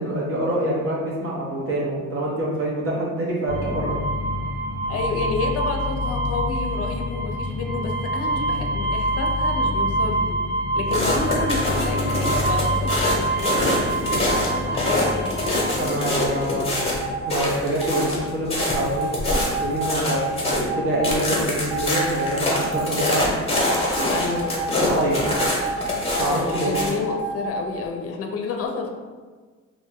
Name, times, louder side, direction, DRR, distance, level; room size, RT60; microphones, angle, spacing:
voice 1, 0.0-4.0 15.8-16.8 17.3-23.3 24.7-25.2 26.2-26.8, right 1 dB, 45° right, -5 dB, 0.7 m, -26 dB
sound 1, 3.5-16.9, right 1 dB, 85° right, 1.4 m, -26 dB
voice 2, 4.9-10.4 10.7-17.2 24.1-24.6 26.2-28.9, left 4 dB, 50° left, 2 dB, 0.5 m, -30 dB
sound 2, 10.9-20.6 21.0-26.9, left 1 dB, 20° left, 0.9 m, -25 dB
sound 3, 16.8-17.3 17.8-18.1 18.6-21.2 21.7-23.1 23.5-24.8 25.3-27.6, right 4 dB, 5° right, 0.4 m, -29 dB
2.6 x 2.1 x 3.5 m, 1.4 s
cardioid pair, 90°, 30 cm